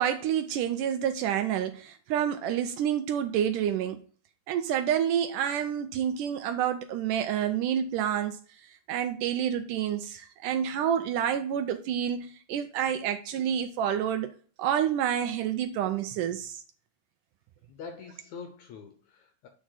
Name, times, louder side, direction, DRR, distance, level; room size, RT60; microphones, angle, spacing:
voice 1, 0.0-4.0 4.5-8.4 8.9-14.3 14.6-16.6, right 9 dB, 80° right, 2.0 m, -28 dB
voice 2, 17.7-19.5, left 5 dB, 70° left, 1.9 m, -44 dB
8.5 x 4.7 x 4.0 m
omnidirectional pair, 4.1 m